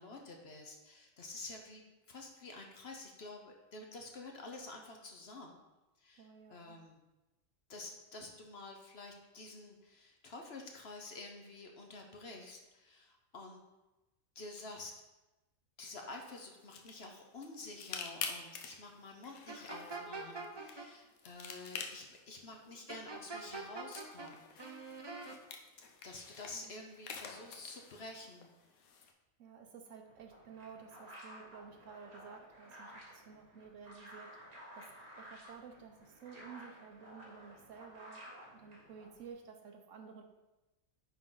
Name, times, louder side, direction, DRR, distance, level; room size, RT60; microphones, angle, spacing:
voice 1, 0.0-5.6 6.0-7.0 7.7-13.6 14.3-14.9 15.8-24.9 26.0-28.8, left 2 dB, 50° left, 2 dB, 1.0 m, -49 dB
voice 2, 6.2-6.8 26.5-26.8 29.4-34.9 35.2-40.2, right 6 dB, 65° right, 4 dB, 1.1 m, -53 dB
sound 1, 16.1-29.1, left 5 dB, 85° left, 1.2 m, -49 dB
sound 2, 19.5-20.9 22.9-24.3 24.6-25.4, right 3 dB, 35° right, 0.4 m, -44 dB
sound 3, 30.1-39.3, equal, 80° right, 2.1 m, -54 dB
9.6 x 3.9 x 3.9 m, 1.0 s
omnidirectional pair, 1.5 m